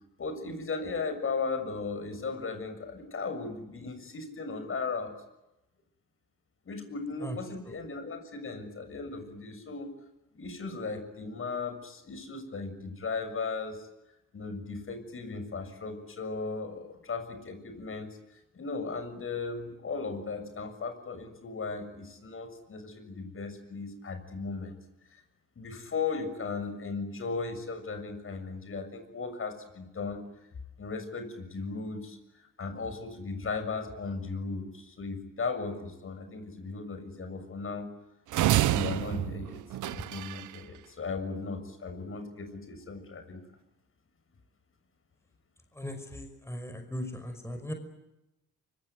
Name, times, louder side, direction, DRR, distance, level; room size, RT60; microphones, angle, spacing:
voice 1, 0.2-5.1 6.7-9.9 10.3-13.9 14.3-24.8 25.1-25.2 25.6-30.2 30.8-37.9 38.5-43.4, left 4 dB, 45° left, 8 dB, 6.9 m, -37 dB
sound 1, 38.3-40.6, right 15 dB, 80° right, 1.0 m, -28 dB
voice 2, 45.8-47.7, equal, 10° left, 5 dB, 5.4 m, -38 dB
24.5 x 24.5 x 9.4 m, 0.93 s
cardioid pair, 90°, 30 cm